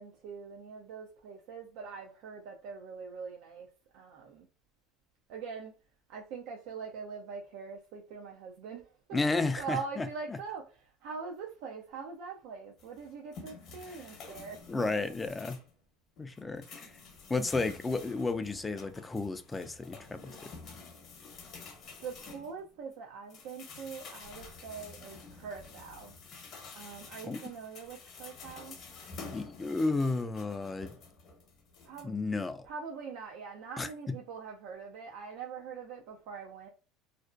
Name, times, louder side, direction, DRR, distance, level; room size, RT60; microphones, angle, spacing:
voice 1, 0.0-3.7 3.9-4.5 5.3-5.7 6.1-9.2 9.6-14.9 22.0-26.1 26.7-28.8 31.8-32.1 32.6-36.7, right 5 dB, 65° right, 0.4 m, -43 dB
voice 2, 9.1-10.1 14.7-15.6 16.2-16.9 17.3-20.5 27.2-27.4 29.3-30.9 32.0-32.7 33.8-33.9, left 3 dB, 20° left, 0.3 m, -32 dB
sound 1, 12.8-15.8 16.2-22.9 23.3-32.0, left 4 dB, 55° left, 0.8 m, -49 dB
2.4 x 2.1 x 2.4 m
hypercardioid pair, 85°, 0 cm